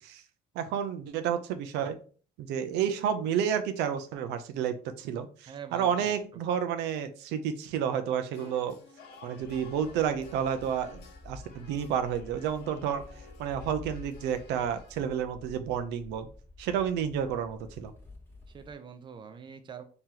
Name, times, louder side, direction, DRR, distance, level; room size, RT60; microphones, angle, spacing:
voice 1, 0.5-2.0 2.4-8.8 9.2-13.0 13.4-16.3 16.6-17.9, right 8 dB, 90° right, 8 dB, 0.5 m, -30 dB
voice 2, 5.5-6.4 18.5-19.8, right 7 dB, 30° right, 8 dB, 0.5 m, -45 dB
sound 1, 8.3-15.0, left 5 dB, 80° left, 0.7 m, -54 dB
sound 2, 9.4-18.7, left 2 dB, 15° left, 0.9 m, -50 dB
3.0 x 2.9 x 3.7 m, 0.40 s
cardioid pair, 110°, 17 cm